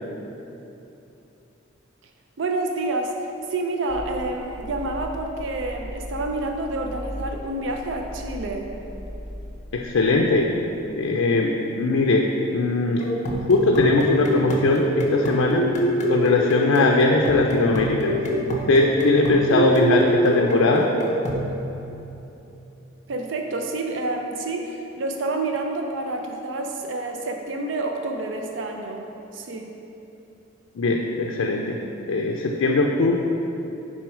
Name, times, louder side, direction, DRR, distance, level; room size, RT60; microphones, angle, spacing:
voice 1, 2.4-3.2 3.5-8.7 23.1-29.0 29.3-29.7, right 2 dB, 65° right, 3 dB, 0.4 m, -28 dB
sound 1, 3.9-9.8, equal, 30° right, 0.7 m, -37 dB
voice 2, 9.7-10.5 10.9-13.0 13.4-15.6 16.1-18.1 18.5-20.9 30.8-31.8 32.1-33.2, left 3 dB, 90° left, 1 dB, 0.4 m, -20 dB
sound 2, 13.0-21.5, equal, 35° left, 0.6 m, -25 dB
6.0 x 4.0 x 4.8 m, 3.0 s
head